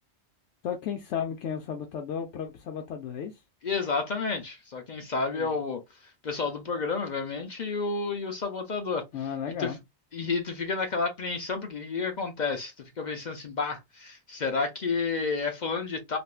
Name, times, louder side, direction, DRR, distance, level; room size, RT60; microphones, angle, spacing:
voice 1, 0.6-3.4 5.3-5.6 9.1-9.8, left 8 dB, 85° left, 0.9 m, -34 dB
voice 2, 3.6-5.8 6.2-9.0 9.6-9.7 10.1-16.2, left 4 dB, 50° left, 0.6 m, -30 dB
3.4 x 2.4 x 2.4 m
omnidirectional pair, 1.2 m